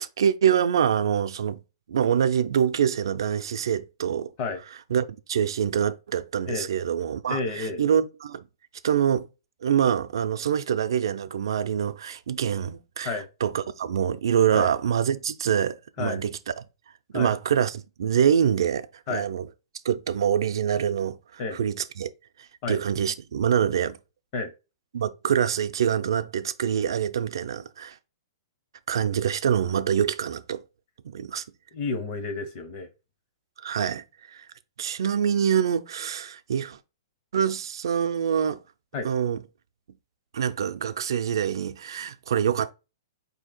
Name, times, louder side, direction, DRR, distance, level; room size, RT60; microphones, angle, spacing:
voice 1, 0.0-1.6 1.9-4.3 4.9-8.4 8.8-9.3 9.6-16.6 17.1-19.5 19.8-22.1 22.7-24.0 24.9-28.0 28.9-30.6 31.0-31.4 33.6-34.0 34.3-34.4 34.8-36.8 37.3-38.6 39.0-39.4 40.3-42.7, right 8 dB, 75° right, 0.4 m, -25 dB
voice 2, 7.3-7.8 13.0-13.3 14.5-14.7 16.0-16.2 17.1-17.3 19.1-19.3 21.4-21.6 22.6-22.8 24.3-24.5 31.7-32.9 38.9-39.1, left 4 dB, 30° left, 0.6 m, -31 dB
4.3 x 2.8 x 3.7 m
hypercardioid pair, 170°, 2 cm